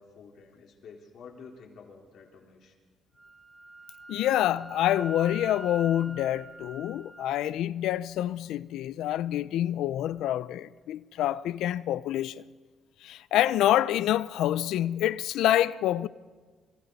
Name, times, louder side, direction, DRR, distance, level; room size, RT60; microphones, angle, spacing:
voice 1, 0.0-2.8, left 5 dB, 70° left, 4.1 m, -50 dB
Wind instrument woodwind instrument, 3.2-7.3, right 1 dB, 15° right, 1.9 m, -44 dB
voice 2, 4.1-12.4 13.0-16.1, left 12 dB, 85° left, 0.5 m, -27 dB
28.0 x 26.5 x 4.2 m
cardioid pair, 90°, 0 cm